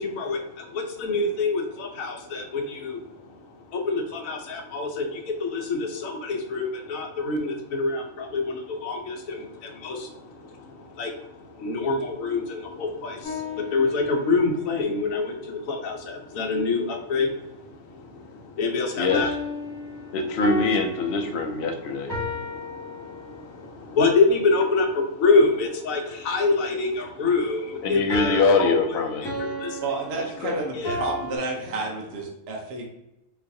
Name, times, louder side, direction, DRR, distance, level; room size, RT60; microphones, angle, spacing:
voice 1, 0.0-19.3 19.7-20.2 21.4-29.0 29.2-29.8 30.7-31.0, left 3 dB, 80° left, 2 dB, 1.1 m, -27 dB
sound 1, 13.2-14.6 19.1-23.6 28.1-31.4, left 1 dB, 5° left, 1.3 m, -34 dB
voice 2, 19.0-19.4 20.1-22.1 27.8-29.2 30.4-30.6, left 3 dB, 65° left, 4 dB, 0.7 m, -23 dB
voice 3, 29.8-32.8, right 3 dB, 60° right, 0 dB, 0.8 m, -31 dB
3.9 x 2.5 x 2.6 m, 0.88 s
omnidirectional pair, 1.4 m